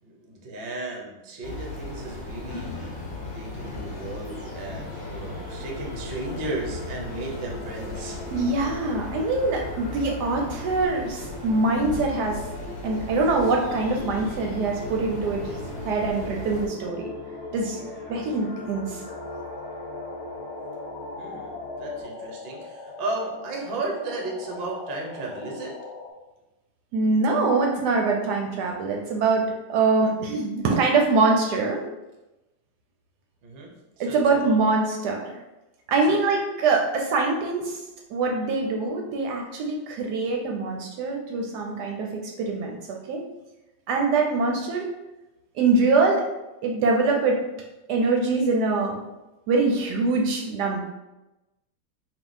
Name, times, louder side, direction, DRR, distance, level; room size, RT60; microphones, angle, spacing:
voice 1, 0.0-2.9 3.3-8.2 21.2-25.7 33.4-33.7 34.0-34.6 36.0-36.2, right 2 dB, 50° right, -1 dB, 0.8 m, -34 dB
sound 1, 1.4-16.7, left 2 dB, 50° left, 0.9 m, -37 dB
sound 2, 4.2-22.0, left 1 dB, 15° right, 0.8 m, -41 dB
voice 2, 8.3-12.4 12.8-15.5 15.8-17.1 17.5-17.8 18.1-19.0 26.9-31.8 34.0-35.3 35.9-37.8 38.1-43.2 43.9-44.9 45.5-46.3 46.6-47.4 47.9-49.0 49.5-50.8, right 3 dB, 75° right, 1 dB, 1.1 m, -24 dB
sound 3, 19.1-26.1, left 3 dB, 75° left, 1.3 m, -40 dB
3.7 x 2.6 x 3.9 m, 1.0 s
omnidirectional pair, 1.9 m